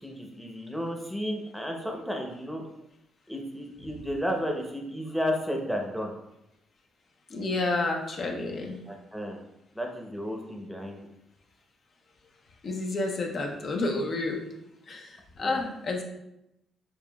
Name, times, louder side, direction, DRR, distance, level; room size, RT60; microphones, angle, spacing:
voice 1, 0.0-2.6 3.3-6.1 8.8-9.4 9.7-11.0 15.4-15.6, equal, ahead, 1 dB, 0.8 m, -33 dB
voice 2, 7.3-8.8 12.6-14.4 14.9-16.0, left 2 dB, 50° left, 1 dB, 0.8 m, -30 dB
6.4 x 2.4 x 2.3 m, 0.85 s
cardioid pair, 90°, 0 cm